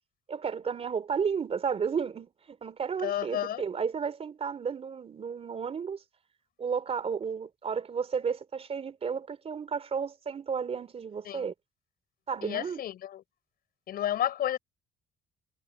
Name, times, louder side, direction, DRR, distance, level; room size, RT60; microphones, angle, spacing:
voice 1, 0.3-6.0 6.6-11.5 12.3-12.8, right 6 dB, 35° right, 3.3 m, -33 dB
voice 2, 3.0-3.6 11.2-11.5 12.4-13.2 13.9-14.6, left 11 dB, 65° left, 6.3 m, -31 dB
cardioid pair, 110°, 17 cm